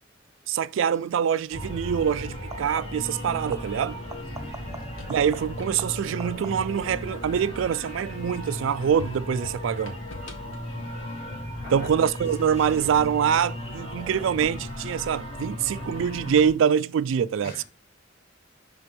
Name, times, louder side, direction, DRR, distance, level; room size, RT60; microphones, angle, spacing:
voice 1, 0.5-4.0 5.1-10.0 11.7-17.6, right 8 dB, 75° right, 0.3 m, -25 dB
sound 1, 0.9-1.2 2.4-3.2 3.5-6.9 12.3-12.9 14.4-14.5, right 2 dB, 15° right, 0.6 m, -45 dB
sound 2, 1.5-16.5, left 1 dB, 35° left, 2.6 m, -36 dB
voice 2, 4.2-4.9 11.6-11.9 17.4-17.6, left 1 dB, 50° left, 3.0 m, -43 dB
sound 3, 4.8-7.8 8.3-11.7, left 3 dB, 85° left, 1.3 m, -46 dB
5.9 x 3.5 x 5.1 m
head